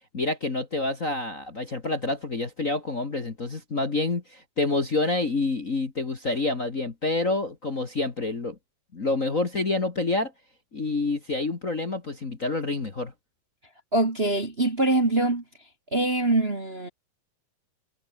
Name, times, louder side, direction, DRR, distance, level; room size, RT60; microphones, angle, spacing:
voice 1, 0.1-8.6 8.9-10.3 10.7-13.1, left 2 dB, 30° left, 2.0 m, -28 dB
voice 2, 13.9-15.4 15.9-16.9, right 2 dB, 20° right, 2.0 m, -23 dB
omnidirectional pair, 3.5 m